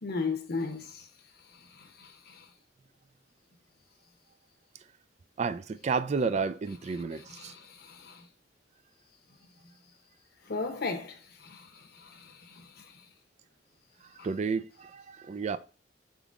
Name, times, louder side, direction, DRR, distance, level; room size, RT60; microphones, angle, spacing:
voice 1, 0.0-1.1 1.5-2.5 6.9-8.3 10.5-13.1 14.2-14.3, left 4 dB, 60° left, 0.8 m, -37 dB
voice 2, 5.4-7.5 14.2-15.6, right 5 dB, 40° right, 0.3 m, -31 dB
4.6 x 3.7 x 2.4 m
head